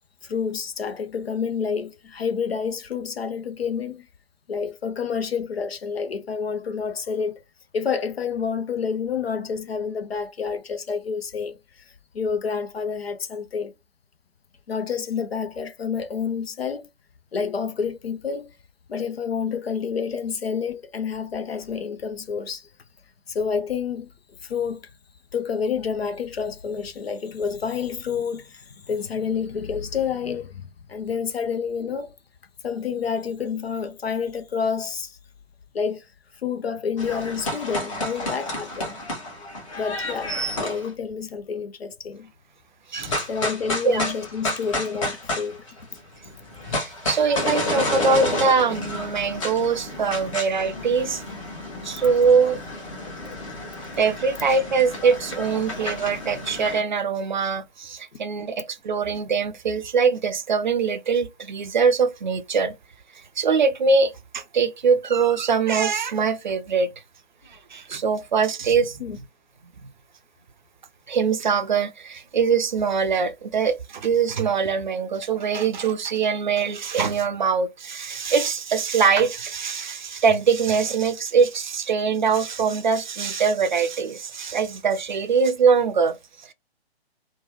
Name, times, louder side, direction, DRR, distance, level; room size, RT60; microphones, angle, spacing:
voice 1, 0.2-4.1 4.5-7.4 7.7-13.7 14.7-16.9 17.3-18.5 18.9-22.7 23.3-24.1 24.4-24.8 25.3-32.1 32.6-35.2 35.7-36.1 36.4-39.0 39.8-42.3 43.3-45.7 46.2-46.3 69.0-69.2, left 6 dB, 65° left, 0.6 m, -29 dB
sound 1, 37.0-40.9 43.0-46.0 46.3-56.8, left 1 dB, 30° left, 1.0 m, -31 dB
voice 2, 42.9-43.2 43.8-44.1 46.7-51.2 51.8-52.6 54.0-62.7 63.4-66.9 67.5-69.0 71.1-86.2, right 5 dB, 45° right, 0.5 m, -22 dB
3.0 x 2.2 x 2.9 m
figure-of-eight pair, 135°, 32 cm